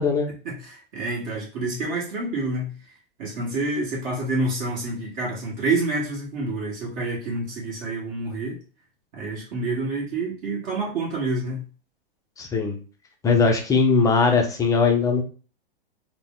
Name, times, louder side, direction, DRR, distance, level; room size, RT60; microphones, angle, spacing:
voice 1, 0.4-2.7 3.2-8.6 9.1-11.6, right 2 dB, 45° right, -3 dB, 1.6 m, -28 dB
voice 2, 12.4-12.8 13.2-15.2, left 4 dB, 10° left, 3 dB, 0.5 m, -20 dB
4.2 x 2.1 x 3.6 m, 0.36 s
hypercardioid pair, 140°, 30 cm